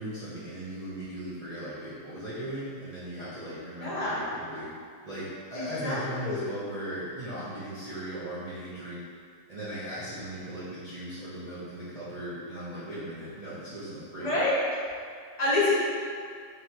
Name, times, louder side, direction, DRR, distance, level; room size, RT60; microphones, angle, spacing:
voice 1, 0.0-4.7 5.0-9.0 9.5-14.4, right 1 dB, 75° right, -12 dB, 0.3 m, -38 dB
voice 2, 3.8-4.1 5.5-6.5 14.2-14.5 15.4-15.7, left 2 dB, 25° left, -9 dB, 0.9 m, -27 dB
3.0 x 2.9 x 4.5 m, 2.2 s
omnidirectional pair, 1.9 m